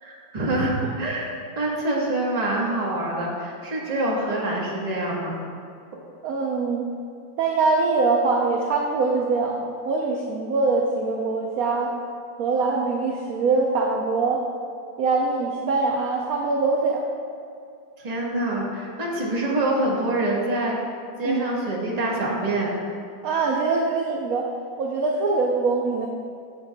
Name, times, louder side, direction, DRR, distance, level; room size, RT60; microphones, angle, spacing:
voice 1, 0.0-5.3 18.0-20.8 21.2-22.7, right 1 dB, 25° right, -3 dB, 1.1 m, -25 dB
voice 2, 6.2-6.8 7.4-11.9 12.4-14.4 15.0-17.0 21.2-21.4 23.2-24.5 24.8-26.1, right 3 dB, 65° right, 0 dB, 0.9 m, -23 dB
14.5 x 6.4 x 2.3 m, 2.4 s
omnidirectional pair, 2.1 m